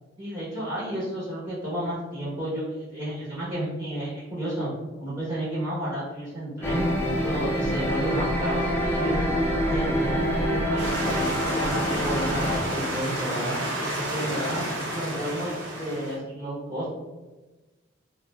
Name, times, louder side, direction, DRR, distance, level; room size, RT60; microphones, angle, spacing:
voice 1, 0.2-4.7 5.0-6.9 7.2-9.3 9.6-13.6 14.0-14.6 14.9-17.0, equal, 10° right, -9 dB, 0.8 m, -31 dB
sound 1, 6.6-12.6, equal, 10° left, 0.4 m, -26 dB
sound 2, 10.8-16.2, right 1 dB, 60° right, 0.7 m, -30 dB
2.4 x 2.0 x 3.3 m, 1.2 s
head